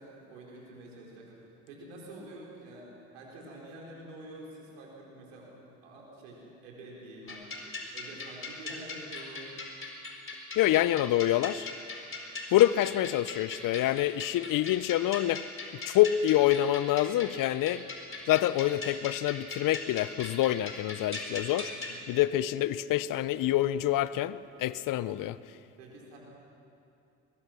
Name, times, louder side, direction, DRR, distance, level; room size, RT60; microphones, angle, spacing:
voice 1, 0.0-7.6 7.9-9.6 21.7-22.1 23.2-23.5 25.8-26.2, right 1 dB, 85° right, -3 dB, 4.9 m, -48 dB
sound 1, 7.3-22.0, left 3 dB, 35° left, 4.2 m, -40 dB
voice 2, 10.6-11.7 12.5-15.4 15.8-17.8 18.3-21.7 22.1-25.4, left 13 dB, 60° left, 17 dB, 0.8 m, -26 dB
22.5 x 21.5 x 6.2 m, 2.7 s
hypercardioid pair, 55°, 37 cm